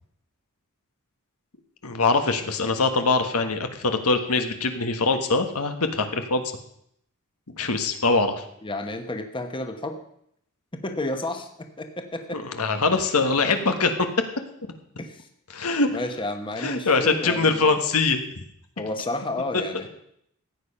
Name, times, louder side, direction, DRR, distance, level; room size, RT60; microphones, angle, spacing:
voice 1, 1.8-6.4 7.6-8.4 12.3-14.1 15.5-15.9 16.6-18.2, left 3 dB, 80° left, 7 dB, 1.4 m, -23 dB
voice 2, 8.6-10.0 10.7-11.5 11.8-12.4 15.0-15.3 15.9-17.7 18.8-19.9, left 2 dB, 25° left, 6 dB, 1.1 m, -31 dB
15.0 x 8.8 x 5.6 m, 0.72 s
head